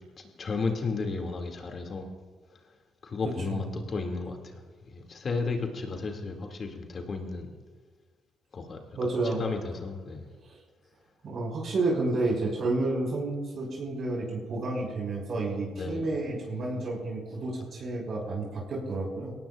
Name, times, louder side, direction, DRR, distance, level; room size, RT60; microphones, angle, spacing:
voice 1, 0.4-2.1 3.0-4.6 4.9-7.5 8.5-8.8 9.2-10.3 15.7-16.1, left 4 dB, 50° left, 2 dB, 2.6 m, -33 dB
voice 2, 3.2-3.6 8.9-9.4 10.5-10.6 11.2-19.3, right 2 dB, 60° right, -2 dB, 5.7 m, -30 dB
22.5 x 18.0 x 2.6 m, 1.5 s
hypercardioid pair, 55°, 0 cm